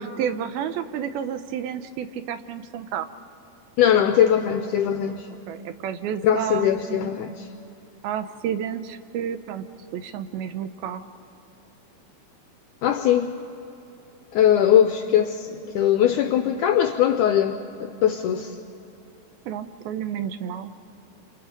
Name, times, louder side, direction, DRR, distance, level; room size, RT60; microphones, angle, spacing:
voice 1, 0.0-3.1 5.5-7.1 8.0-9.7 9.9-11.0 19.5-20.7, right 9 dB, 80° right, 10 dB, 2.7 m, -30 dB
voice 2, 3.8-5.3 6.2-7.5 12.8-13.3 14.3-18.6, left 10 dB, 80° left, 7 dB, 1.8 m, -21 dB
28.5 x 28.0 x 5.2 m, 2.9 s
omnidirectional pair, 4.3 m